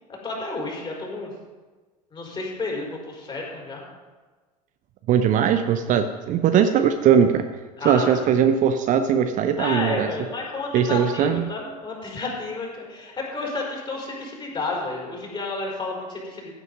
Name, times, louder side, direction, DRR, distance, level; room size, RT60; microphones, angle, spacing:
voice 1, 0.2-1.3 2.1-3.9 7.8-8.2 9.6-16.5, left 3 dB, 25° left, -1 dB, 4.7 m, -31 dB
voice 2, 5.1-7.4 7.8-10.1 10.7-11.4, right 8 dB, 35° right, 8 dB, 0.8 m, -20 dB
15.5 x 8.2 x 5.4 m, 1.3 s
figure-of-eight pair, 75°, 21 cm